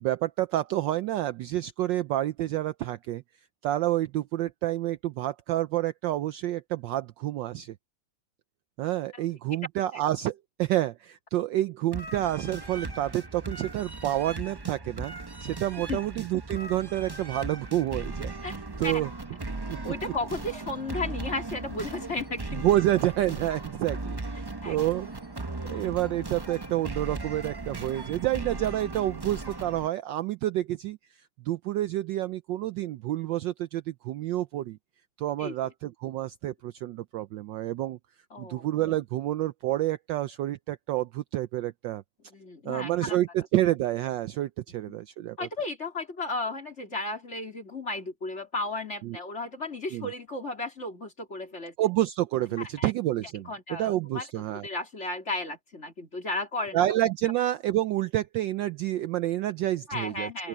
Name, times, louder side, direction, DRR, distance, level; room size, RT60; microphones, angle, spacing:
voice 1, 0.0-3.2 3.6-7.7 8.8-15.1 15.4-18.3 18.8-19.1 19.7-19.8 22.5-25.1 25.7-34.8 35.2-38.0 38.4-42.0 42.7-45.5 49.0-49.2 49.9-50.1 51.8-54.7 56.7-60.5, right 14 dB, 75° right, 1.1 m, -29 dB
sound 1, 11.9-29.9, right 2 dB, 40° right, 0.3 m, -37 dB
voice 2, 19.8-22.6 24.6-24.8 35.4-35.5 38.3-38.7 42.3-43.2 44.9-45.0 45.4-51.7 52.6-52.9 53.5-54.3 54.5-56.8 59.9-60.5, left 2 dB, 30° left, 3.8 m, -34 dB
open air
omnidirectional pair, 2.3 m